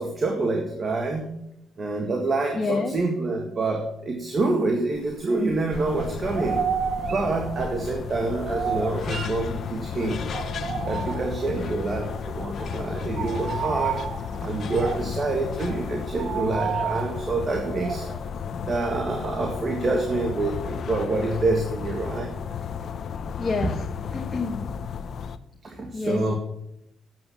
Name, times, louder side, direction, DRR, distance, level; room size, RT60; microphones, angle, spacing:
voice 1, 0.0-1.3 1.8-6.6 7.0-10.3 10.8-14.0 14.4-18.1 18.6-22.3 25.6-26.4, right 2 dB, 40° right, 3 dB, 1.8 m, -27 dB
voice 2, 2.5-3.0 23.4-23.9 24.1-24.7 25.9-26.3, left 3 dB, 30° left, 2 dB, 1.3 m, -28 dB
sound 1, 5.0-5.7 5.9-9.9 10.3-11.6 12.0-12.2 12.5-18.3, right 7 dB, 55° right, 0.8 m, -32 dB
sound 2, 5.7-25.4, left 7 dB, 60° left, 0.7 m, -33 dB
9.1 x 7.7 x 7.0 m, 0.80 s
cardioid pair, 90°, 0 cm